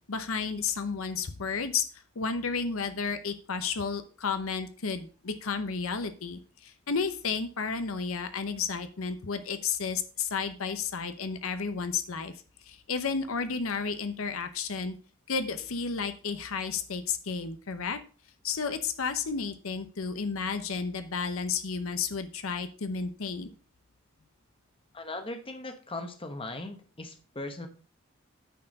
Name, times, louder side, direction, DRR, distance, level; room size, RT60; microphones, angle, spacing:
voice 1, 0.1-12.3 12.6-15.0 15.3-18.0 18.4-23.5, left 5 dB, 75° left, 10 dB, 0.8 m, -32 dB
voice 2, 24.9-27.7, left 2 dB, 25° left, 6 dB, 1.0 m, -39 dB
9.1 x 4.6 x 5.2 m, 0.39 s
head